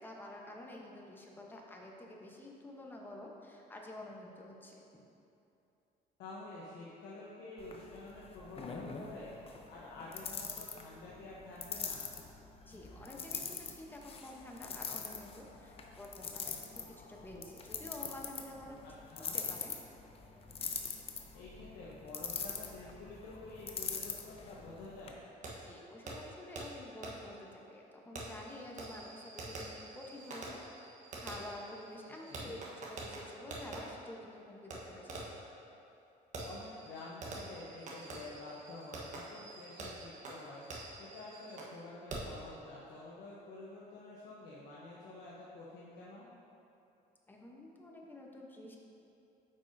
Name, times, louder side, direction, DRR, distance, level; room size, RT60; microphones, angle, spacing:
voice 1, 0.0-5.0 12.7-18.8 19.3-19.7 25.6-30.6 31.2-35.3 47.3-48.8, left 1 dB, 10° left, -1 dB, 0.9 m, -49 dB
voice 2, 6.2-9.3 9.7-12.1 18.8-19.4 21.3-25.3 32.0-32.6 36.4-46.3, left 2 dB, 80° left, -6 dB, 0.9 m, -49 dB
sound 1, 7.6-25.1, left 5 dB, 35° left, 0.6 m, -44 dB
Fireworks, 25.4-25.5 26.1-26.2 26.6-26.7 27.0-27.1 28.2-33.8 34.7-34.8 35.1-35.4 36.3-41.8 42.1-42.4, right 2 dB, 45° right, 1.2 m, -46 dB
8.8 x 5.4 x 2.7 m, 2.8 s
cardioid pair, 110°, 17 cm